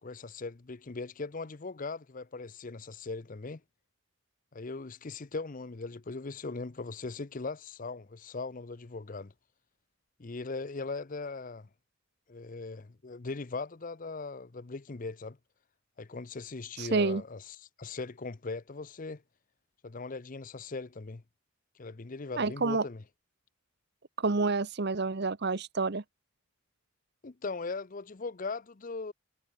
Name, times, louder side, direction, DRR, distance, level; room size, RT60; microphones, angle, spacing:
voice 1, 0.0-3.6 4.5-9.3 10.2-11.7 12.3-15.4 16.0-19.2 19.8-21.2 21.8-23.0 27.2-29.1, left 3 dB, 40° left, 0.7 m, -39 dB
voice 2, 16.8-17.2 22.4-22.8 24.2-26.0, right 3 dB, 50° right, 0.9 m, -28 dB
head